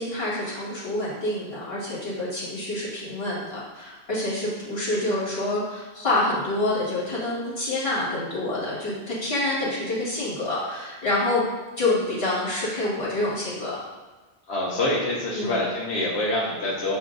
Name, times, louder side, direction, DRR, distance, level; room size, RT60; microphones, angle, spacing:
voice 1, 0.0-11.4 11.8-13.8 15.3-15.6, left 2 dB, 65° left, -8 dB, 1.9 m, -27 dB
voice 2, 14.5-17.0, left 1 dB, 90° left, -5 dB, 1.0 m, -26 dB
7.8 x 2.6 x 2.5 m, 1.2 s
omnidirectional pair, 1.1 m